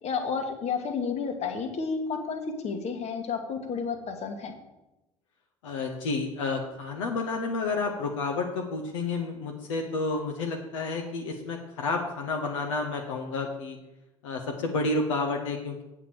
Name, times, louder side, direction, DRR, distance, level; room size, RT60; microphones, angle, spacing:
voice 1, 0.0-4.5, left 5 dB, 40° left, 6 dB, 1.4 m, -31 dB
voice 2, 5.6-13.8 14.2-15.8, left 3 dB, 70° left, 2 dB, 0.9 m, -30 dB
8.3 x 4.7 x 7.3 m, 0.97 s
figure-of-eight pair, 60°, 17 cm